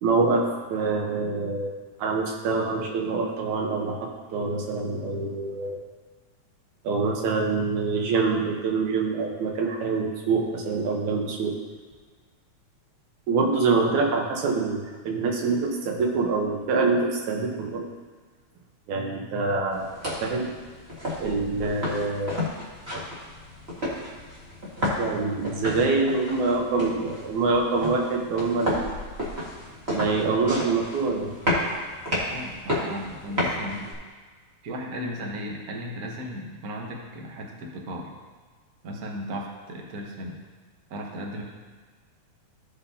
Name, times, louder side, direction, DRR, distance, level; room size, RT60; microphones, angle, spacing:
voice 1, 0.0-5.8 6.8-11.6 13.3-17.9 18.9-19.9 20.2-20.5 21.2-22.5 25.0-28.9 29.9-31.3, right 4 dB, 85° right, 1 dB, 2.5 m, -25 dB
sound 1, 19.7-33.9, left 1 dB, 25° right, 1.6 m, -32 dB
voice 2, 32.3-33.9 34.6-38.1 38.8-40.4 40.9-41.4, equal, 70° right, 0 dB, 0.8 m, -36 dB
15.0 x 5.5 x 2.8 m, 1.4 s
omnidirectional pair, 3.3 m